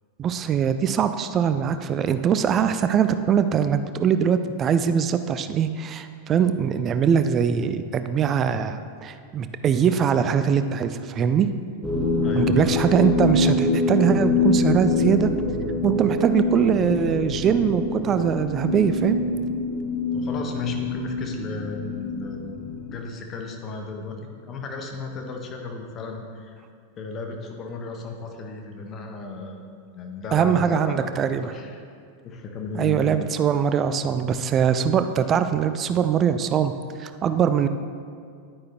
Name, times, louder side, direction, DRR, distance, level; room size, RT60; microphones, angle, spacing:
voice 1, 0.2-11.5 12.4-15.3 15.8-19.2 30.3-31.5 32.7-36.7 37.0-37.7, right 8 dB, 30° right, 10 dB, 0.4 m, -22 dB
sound 1, 11.8-23.0, left 3 dB, ahead, 1.5 m, -25 dB
voice 2, 12.2-12.7 20.1-24.2 24.5-26.6 27.0-29.6 29.9-31.8 32.2-33.1, left 3 dB, 30° left, 2 dB, 1.2 m, -34 dB
10.5 x 9.5 x 3.0 m, 2.2 s
figure-of-eight pair, 90°, 0 cm